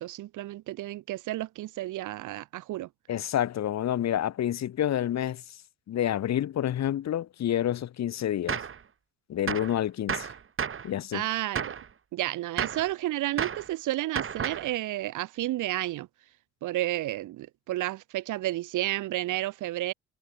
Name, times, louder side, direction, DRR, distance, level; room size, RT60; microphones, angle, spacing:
voice 1, 0.0-2.9 11.1-11.8 12.1-16.1 16.6-19.9, right 15 dB, 80° right, 1.3 m, -31 dB
voice 2, 3.1-5.4 5.9-8.6 9.3-10.3 10.8-11.2, left 11 dB, 60° left, 1.4 m, -28 dB
Gunshot gunfire, 8.5-8.8 9.5-9.8 10.1-10.9 11.6-11.9 12.6-12.9 13.4-13.7 14.2-14.7, right 7 dB, 45° right, 2.4 m, -32 dB
cardioid pair, 90°, 30 cm